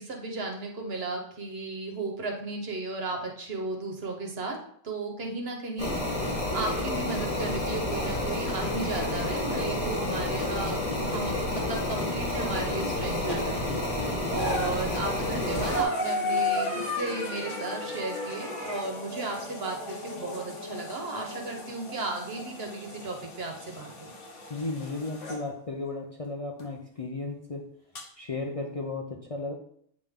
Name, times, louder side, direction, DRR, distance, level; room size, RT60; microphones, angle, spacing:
voice 1, 0.0-4.6 4.8-13.6 14.3-24.1, right 3 dB, 55° right, 1 dB, 1.3 m, -35 dB
sound 1, 5.8-15.8, left 1 dB, 30° left, 1.3 m, -30 dB
sound 2, 13.3-13.7 14.2-25.4 26.6-26.7 27.9-28.0, left 2 dB, 80° left, 1.3 m, -35 dB
voice 2, 24.5-27.7 28.2-29.5, left 3 dB, 45° left, 1 dB, 0.4 m, -34 dB
8.5 x 3.7 x 3.6 m, 0.67 s
omnidirectional pair, 1.3 m